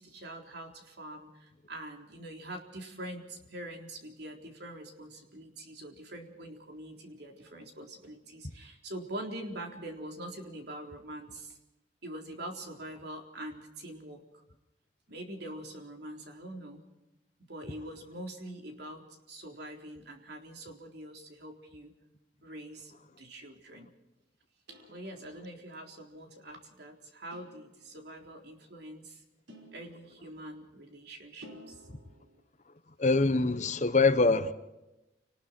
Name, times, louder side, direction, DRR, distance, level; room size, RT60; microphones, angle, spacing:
voice 1, 0.0-11.6 12.0-14.4 15.1-16.8 17.5-21.9 22.4-23.9 24.7-29.2 29.7-31.8, right 1 dB, 60° right, 4.0 m, -44 dB
sound 1, 24.7-25.5 27.3-28.2 29.5-30.5 31.4-32.4, equal, 80° right, 5.4 m, -54 dB
voice 2, 33.0-34.5, left 3 dB, 40° left, 1.0 m, -24 dB
29.5 x 20.0 x 4.5 m
head